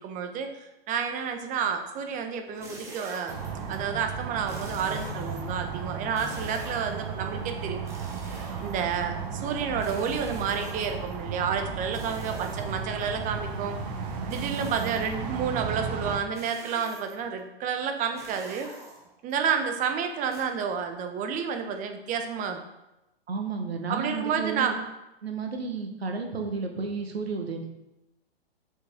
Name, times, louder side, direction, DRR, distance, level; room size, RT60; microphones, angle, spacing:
voice 1, 0.0-3.3 3.7-7.8 8.6-13.8 14.3-18.7 19.2-22.6 23.9-24.7, right 6 dB, 25° right, 6 dB, 0.9 m, -30 dB
sound 1, 2.5-3.8 4.4-5.6 6.1-7.1 7.8-9.1 9.8-11.2 11.9-13.0 14.3-15.2 16.3-17.3 18.1-19.3 20.3-20.4, right 2 dB, 10° right, 1.8 m, -45 dB
sound 2, 3.3-16.2, right 5 dB, 40° right, 1.1 m, -35 dB
voice 2, 23.3-24.7 25.2-27.7, right 4 dB, 80° right, 3 dB, 1.3 m, -32 dB
6.7 x 5.3 x 3.7 m, 0.95 s
hypercardioid pair, 115°, 30 cm